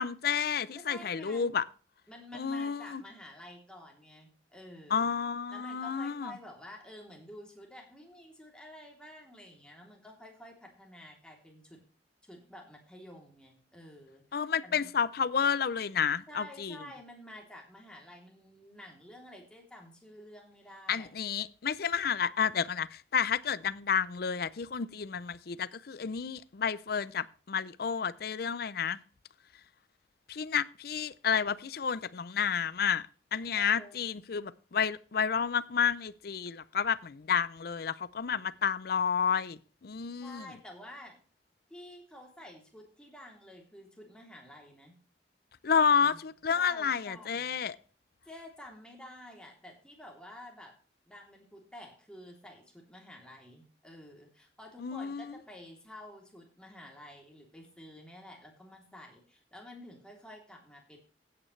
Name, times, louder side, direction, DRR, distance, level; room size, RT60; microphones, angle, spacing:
voice 1, 0.0-1.6 2.3-3.0 4.9-6.3 14.3-16.8 20.9-29.0 30.3-40.5 45.6-47.8 54.8-55.4, left 7 dB, 60° left, 0.5 m, -30 dB
voice 2, 0.9-1.5 2.1-5.1 5.5-11.8 12.2-14.9 16.3-21.1 33.5-34.0 40.2-41.2 41.7-45.0 46.0-46.2 46.5-47.4 48.2-50.7 51.1-61.0, left 1 dB, 5° left, 3.1 m, -50 dB
16.0 x 8.9 x 3.2 m
head